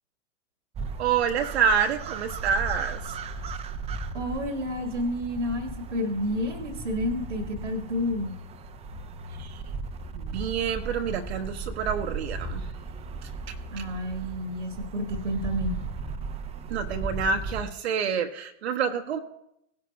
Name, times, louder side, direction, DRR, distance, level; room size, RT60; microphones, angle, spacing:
sound 1, 0.7-17.6, right 4 dB, 15° right, 0.7 m, -36 dB
voice 1, 1.0-3.0 9.4-9.6 10.1-12.7 13.2-13.3 16.7-19.2, right 6 dB, 60° right, 4 dB, 1.0 m, -27 dB
voice 2, 4.1-8.3 13.7-15.8, left 1 dB, 80° right, 5 dB, 1.6 m, -30 dB
17.5 x 10.5 x 2.2 m, 0.80 s
figure-of-eight pair, 90°, 37 cm